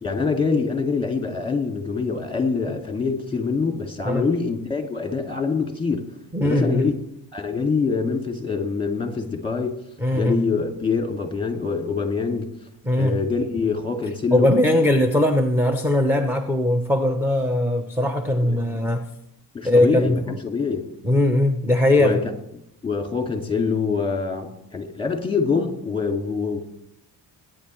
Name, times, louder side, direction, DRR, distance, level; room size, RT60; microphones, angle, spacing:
voice 1, 0.0-6.9 7.3-9.8 10.1-12.5 13.0-14.5 18.4-18.6 19.5-20.9 22.0-22.3 22.8-26.6, left 4 dB, 10° left, 2.2 m, -25 dB
voice 2, 6.3-6.9 10.0-10.4 12.8-13.2 14.3-19.1 19.6-20.2 21.0-22.2, left 1 dB, 5° right, 0.9 m, -20 dB
20.5 x 9.9 x 3.2 m
cardioid pair, 90°, 43 cm